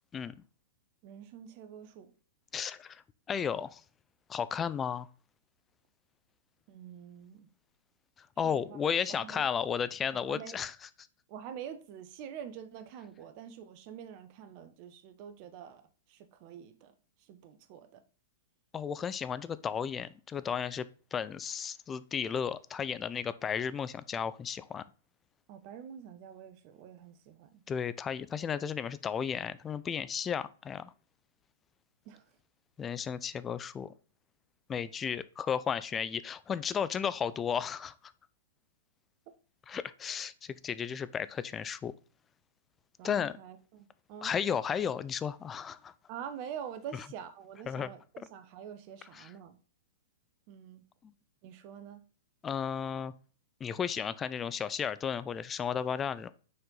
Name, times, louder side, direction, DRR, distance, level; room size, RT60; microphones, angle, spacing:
voice 1, 1.0-2.1 6.7-7.5 8.4-8.8 9.1-9.4 10.3-10.6 11.3-15.8 16.1-18.0 25.5-27.6 32.0-32.2 43.0-44.3 46.1-49.6 50.5-50.8 51.4-52.0, right 8 dB, 45° right, 0.9 m, -46 dB
voice 2, 2.5-3.0 3.3-3.8 4.3-5.1 8.4-10.7 18.7-24.8 27.7-30.9 32.8-33.9 34.7-38.1 39.7-41.9 43.0-43.3 44.2-45.9 47.7-47.9 49.2-49.3 51.0-51.1 52.4-53.1 53.6-56.3, left 7 dB, 20° left, 0.4 m, -34 dB
6.4 x 4.4 x 3.9 m
hypercardioid pair, 110°, 0 cm